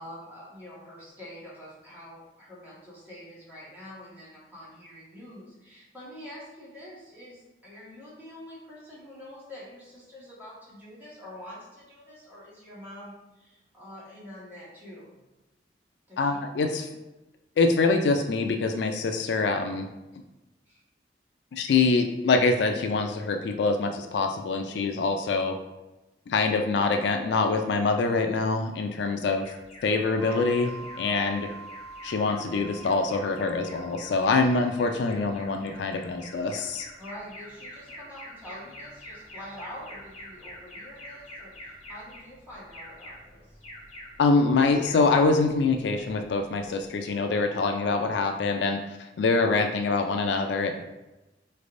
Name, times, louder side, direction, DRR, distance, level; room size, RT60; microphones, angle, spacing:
voice 1, 0.0-15.1 16.1-16.4 20.6-20.8 31.0-31.2 37.0-43.6, equal, 10° right, -8 dB, 1.5 m, -46 dB
voice 2, 16.2-16.9 17.6-19.9 21.5-25.6 26.3-29.5 29.8-31.5 32.0-36.9 44.2-50.8, left 3 dB, 70° left, 5 dB, 0.3 m, -25 dB
Alarm, 29.4-47.0, left 1 dB, 40° left, 1.3 m, -47 dB
sound 1, 30.2-36.7, right 2 dB, 65° right, 1.0 m, -45 dB
4.1 x 3.3 x 2.5 m, 1.0 s
head